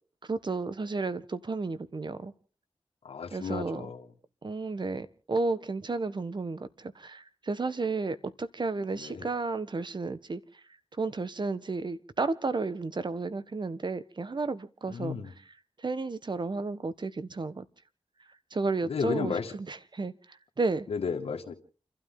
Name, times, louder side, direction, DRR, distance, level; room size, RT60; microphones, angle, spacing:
voice 1, 0.3-2.3 3.3-3.8 4.4-10.4 11.0-15.2 15.8-17.6 18.5-20.1 20.6-20.9, right 3 dB, 50° right, 1.4 m, -32 dB
voice 2, 3.0-4.1 9.0-9.3 14.9-15.3 18.8-19.6 20.9-21.5, left 5 dB, 85° left, 1.9 m, -33 dB
29.5 x 12.5 x 3.8 m
cardioid pair, 50°, 10 cm